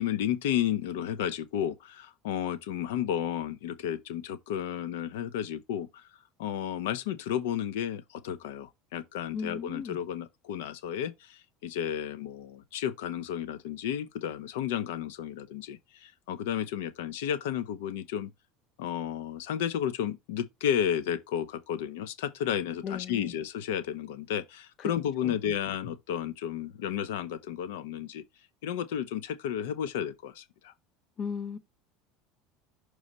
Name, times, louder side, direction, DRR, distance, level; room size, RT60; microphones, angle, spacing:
voice 1, 0.0-6.1 6.4-18.3 18.8-28.2 28.6-30.7, left 9 dB, 90° left, 0.7 m, -32 dB
voice 2, 9.3-10.0 22.8-23.3 25.2-25.3 31.2-31.6, left 6 dB, 40° left, 0.7 m, -36 dB
6.2 x 3.2 x 5.3 m
supercardioid pair, 125°, 0 cm